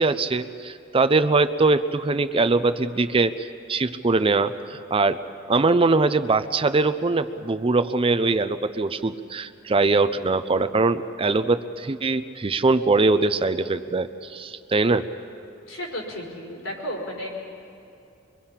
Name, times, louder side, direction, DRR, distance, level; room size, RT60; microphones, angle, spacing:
voice 1, 0.0-5.2 5.5-15.1, right 3 dB, 30° right, 11 dB, 0.5 m, -22 dB
voice 2, 15.7-17.3, equal, 80° left, -2 dB, 5.2 m, -33 dB
25.0 x 23.5 x 5.8 m, 2.6 s
head